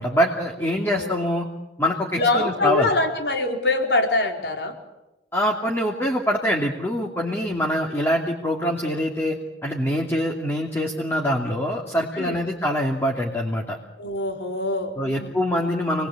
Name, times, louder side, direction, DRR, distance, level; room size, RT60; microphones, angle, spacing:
voice 1, 0.0-1.4 1.8-2.9 5.3-13.8 15.0-16.1, equal, 15° left, 0 dB, 2.7 m, -24 dB
voice 2, 0.7-1.3 2.2-4.7 7.2-7.6 12.1-12.4 14.0-15.4, left 2 dB, 75° left, 3 dB, 4.4 m, -25 dB
28.5 x 20.5 x 8.6 m, 0.99 s
head